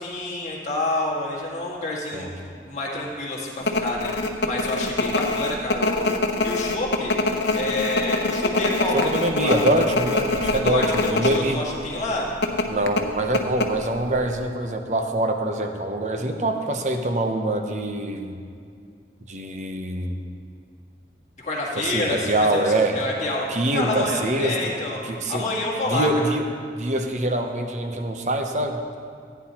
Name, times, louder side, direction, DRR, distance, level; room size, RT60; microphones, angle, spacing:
voice 1, 0.0-7.1 7.5-9.6 10.5-12.3 21.4-22.6 22.9-25.0 25.3-26.3, left 2 dB, 40° left, -4 dB, 1.9 m, -28 dB
sound 1, 3.6-11.4 11.7-11.8 12.4-14.1 14.4-14.5, left 2 dB, 85° left, 0.8 m, -24 dB
voice 2, 8.9-11.6 12.7-18.4 19.3-20.2 21.8-23.0 23.5-24.7 25.0-25.4 25.9-26.4 26.7-28.8, right 1 dB, 40° right, 5 dB, 0.7 m, -24 dB
15.5 x 9.3 x 2.9 m, 2.3 s
head